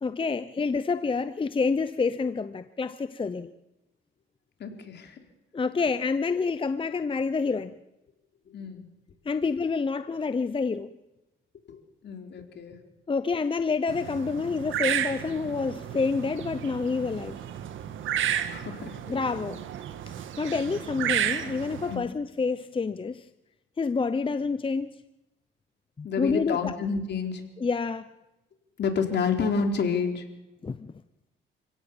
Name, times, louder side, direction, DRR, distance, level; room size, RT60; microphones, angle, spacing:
voice 1, 0.0-3.5 5.5-7.7 9.3-10.9 13.1-17.4 19.1-19.6 20.4-23.3 23.8-25.0 26.0-26.7 27.6-28.1 30.6-30.9, left 4 dB, 25° left, 0.8 m, -28 dB
voice 2, 4.6-5.2 8.5-8.9 11.7-12.8 18.5-19.0 21.9-22.1 26.0-27.4 28.8-30.3, left 5 dB, 60° left, 4.2 m, -29 dB
sound 1, 13.9-22.0, right 10 dB, 75° right, 1.9 m, -32 dB
28.5 x 17.0 x 7.4 m
cardioid pair, 90°, 20 cm